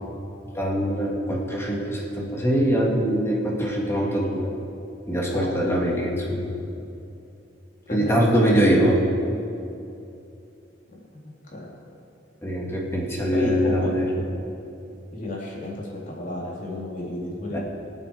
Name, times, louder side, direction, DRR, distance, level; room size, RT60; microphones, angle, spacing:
voice 1, 0.5-4.5 5.1-6.5 7.9-9.0 12.4-14.2 17.5-17.6, equal, 15° left, -2 dB, 2.0 m, -23 dB
voice 2, 7.9-8.9 11.5-11.7 13.3-13.9 15.1-17.6, left 2 dB, 45° left, -4 dB, 3.6 m, -31 dB
24.0 x 8.1 x 5.0 m, 2.7 s
head